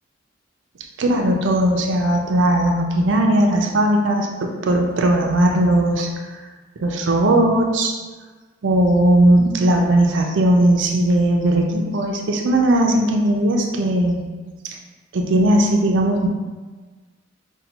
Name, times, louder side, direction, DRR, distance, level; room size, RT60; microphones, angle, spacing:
voice 1, 1.0-6.1 6.8-7.9 8.6-14.2 14.6-14.8 15.1-16.3, right 1 dB, 80° right, 2 dB, 0.5 m, -18 dB
5.4 x 2.2 x 2.8 m, 1.3 s
head